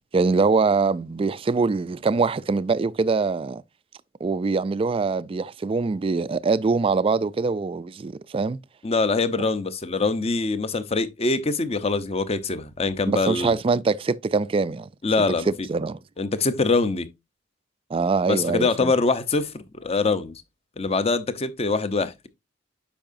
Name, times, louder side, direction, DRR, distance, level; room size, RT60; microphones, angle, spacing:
voice 1, 0.1-3.6 4.2-8.6 13.1-14.9 15.7-16.0 17.9-18.9, right 4 dB, 30° right, 0.3 m, -23 dB
voice 2, 8.8-13.6 15.0-15.7 16.2-17.1 18.3-19.5 19.8-20.4 20.8-22.3, left 3 dB, 30° left, 0.7 m, -24 dB
8.7 x 5.5 x 2.6 m
head